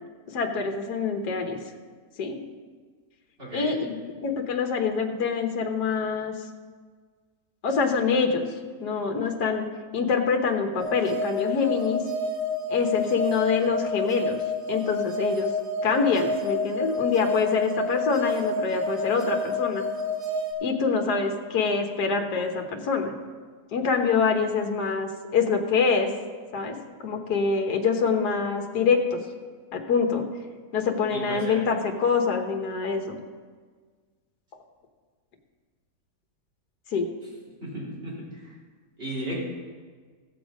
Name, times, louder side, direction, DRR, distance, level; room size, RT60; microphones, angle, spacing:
voice 1, 0.3-1.6 2.2-2.4 3.5-6.3 7.6-8.5 8.8-9.7 9.9-12.0 12.7-14.4 14.7-15.5 15.8-19.8 20.6-23.1 23.7-26.1 26.5-29.2 29.7-30.2 30.7-33.2 36.9-37.1, left 5 dB, 70° left, 3 dB, 1.7 m, -25 dB
voice 2, 3.4-3.7 31.1-31.6 37.6-38.5 39.0-39.4, right 1 dB, 35° right, -7 dB, 3.8 m, -35 dB
sound 1, 10.8-20.5, left 2 dB, 75° right, 2.6 m, -29 dB
16.0 x 7.0 x 5.1 m, 1.6 s
omnidirectional pair, 1.8 m